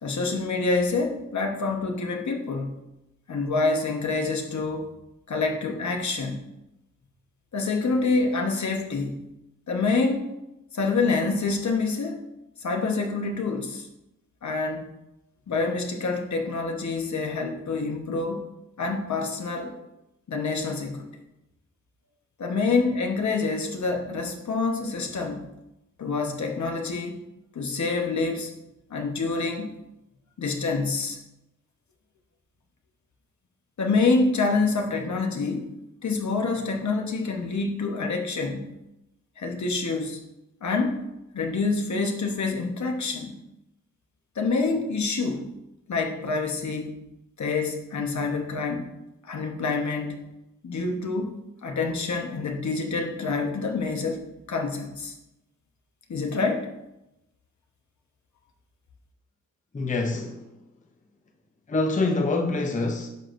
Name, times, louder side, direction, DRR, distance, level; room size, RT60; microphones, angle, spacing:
voice 1, 0.0-2.8 3.3-4.9 5.3-6.5 7.5-9.3 9.7-10.3 10.7-12.2 12.6-13.9 14.4-14.9 15.5-18.4 18.8-19.8 20.3-21.1 22.4-25.5 26.0-27.2 27.5-28.5 28.9-29.7 30.4-31.2 33.8-35.8 36.0-38.7 39.4-40.2 40.6-41.0 41.3-43.4 44.3-45.5 45.9-47.1 47.4-48.9 49.3-50.3 50.6-55.1 56.1-56.7, left 3 dB, 60° left, 1.1 m, -27 dB
voice 2, 59.7-60.5 61.7-63.1, left 3 dB, 25° left, 0.6 m, -25 dB
10.5 x 6.1 x 2.6 m
wide cardioid pair, 140°, 32 cm